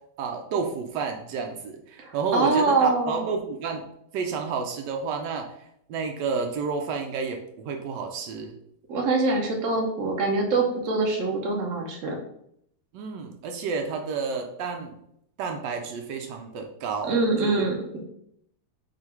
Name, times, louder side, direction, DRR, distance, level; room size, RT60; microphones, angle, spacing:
voice 1, 0.2-3.8 4.1-5.6 5.9-8.5 12.9-15.0 15.4-17.7, right 5 dB, 80° right, 3 dB, 1.2 m, -30 dB
voice 2, 2.0-3.3 8.9-12.2 17.1-18.0, right 3 dB, 55° right, 2 dB, 1.0 m, -24 dB
3.8 x 2.5 x 4.3 m, 0.74 s
omnidirectional pair, 1.9 m